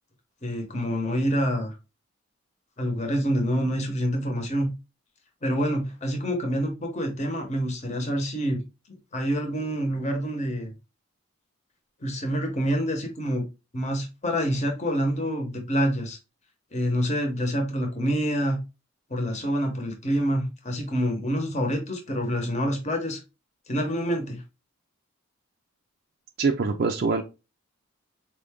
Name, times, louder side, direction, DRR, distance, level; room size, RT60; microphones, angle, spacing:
voice 1, 0.4-1.7 2.8-4.7 5.4-8.6 9.1-10.7 12.0-13.4 13.7-16.2 16.7-18.6 19.1-23.2 23.7-24.4, equal, 35° left, 0.9 m, -27 dB
voice 2, 26.4-27.2, right 4 dB, 50° right, 0.4 m, -24 dB
4.5 x 2.5 x 3.4 m
head